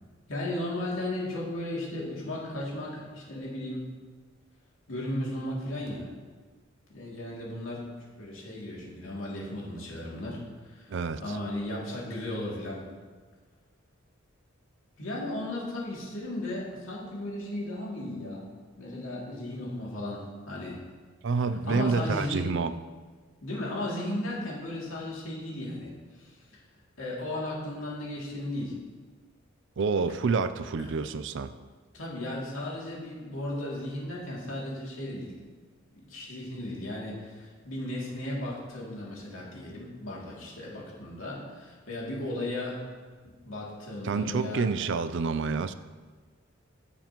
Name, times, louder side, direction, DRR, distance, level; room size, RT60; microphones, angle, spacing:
voice 1, 0.3-3.8 4.9-6.1 6.9-11.0 11.2-12.8 15.0-18.5 18.8-20.8 21.7-22.5 23.4-26.4 27.0-28.8 30.8-30.9 31.9-35.3 35.9-42.8 43.2-44.6, left 1 dB, 90° left, -5 dB, 2.6 m, -35 dB
voice 2, 10.9-11.4 21.2-22.7 29.8-31.5 44.0-45.7, right 4 dB, 65° right, 12 dB, 0.4 m, -28 dB
14.5 x 7.1 x 3.0 m, 1.5 s
head